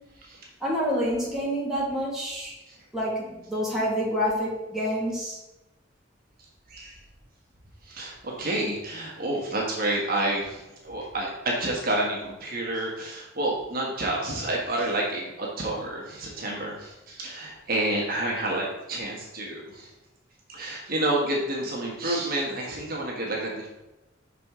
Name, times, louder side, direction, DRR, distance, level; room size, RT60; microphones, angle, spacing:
voice 1, 0.6-2.5 2.9-5.4, equal, ahead, -6 dB, 1.8 m, -27 dB
voice 2, 7.9-19.9 20.5-23.7, right 1 dB, 50° right, -2 dB, 1.2 m, -29 dB
5.9 x 4.9 x 3.6 m, 0.98 s
head